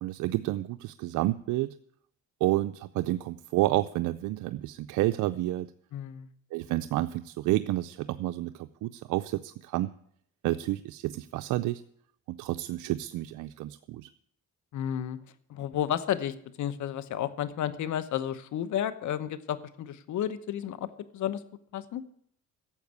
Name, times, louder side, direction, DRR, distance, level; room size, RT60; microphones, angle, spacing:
voice 1, 0.0-1.7 2.4-5.7 6.5-9.9 10.4-11.8 12.4-14.1, right 16 dB, 85° right, 10 dB, 0.5 m, -30 dB
voice 2, 5.9-6.3 14.7-15.2 15.5-21.4 21.7-22.0, left 10 dB, 75° left, 14 dB, 1.1 m, -32 dB
12.0 x 7.4 x 9.5 m, 0.65 s
cardioid pair, 90°, 30 cm